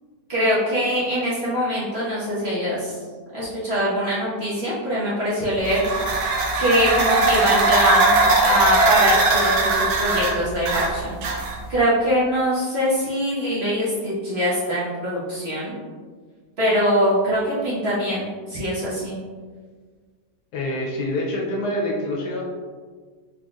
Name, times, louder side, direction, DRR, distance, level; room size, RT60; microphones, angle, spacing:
voice 1, 0.3-3.0 3.3-5.8 6.6-11.2 11.7-15.7 16.6-19.2, equal, 40° right, -9 dB, 1.1 m, -23 dB
sound 1, 5.6-11.8, right 2 dB, 70° right, 1.1 m, -20 dB
voice 2, 20.5-22.4, left 1 dB, 70° left, -2 dB, 1.2 m, -26 dB
4.0 x 3.6 x 2.4 m, 1.5 s
omnidirectional pair, 1.9 m